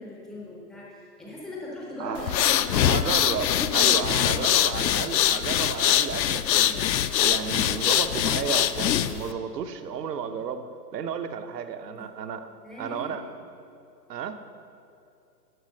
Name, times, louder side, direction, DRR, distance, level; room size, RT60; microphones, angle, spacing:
voice 1, 0.0-3.3 3.5-4.5 12.0-12.1 12.6-13.3, left 1 dB, ahead, -5 dB, 0.5 m, -39 dB
voice 2, 2.0-2.4 2.7-12.5 12.8-13.2 14.1-14.4, right 7 dB, 70° right, 8 dB, 1.0 m, -33 dB
sound 1, 2.2-9.3, left 11 dB, 80° left, 0.6 m, -23 dB
11.0 x 5.8 x 6.5 m, 2.6 s
hypercardioid pair, 140°, 50 cm